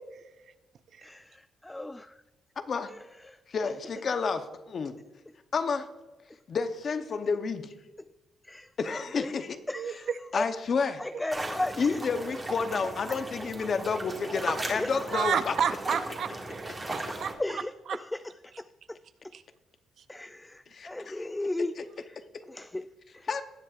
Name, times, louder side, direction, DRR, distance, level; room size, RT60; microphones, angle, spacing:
voice 1, 1.0-2.2 2.9-3.4 8.0-8.1 8.4-9.3 9.7-10.5 11.0-12.0 13.1-13.3 14.7-15.2 17.4-19.0 20.1-21.7 22.0-22.1 22.4-22.9 23.1-23.3, left 1 dB, 10° left, 12 dB, 0.3 m, -36 dB
voice 2, 2.6-2.9 3.5-5.0 5.5-5.9 6.5-7.7 8.8-9.6 10.3-11.0 11.8-15.5 20.7-21.3 23.3-23.4, left 5 dB, 50° left, 9 dB, 0.8 m, -30 dB
sound 1, 11.3-17.3, right 2 dB, 25° right, 1.9 m, -37 dB
voice 3, 15.1-17.3, right 8 dB, 60° right, 12 dB, 0.6 m, -30 dB
18.5 x 7.4 x 2.5 m, 1.1 s
cardioid pair, 90°, 0 cm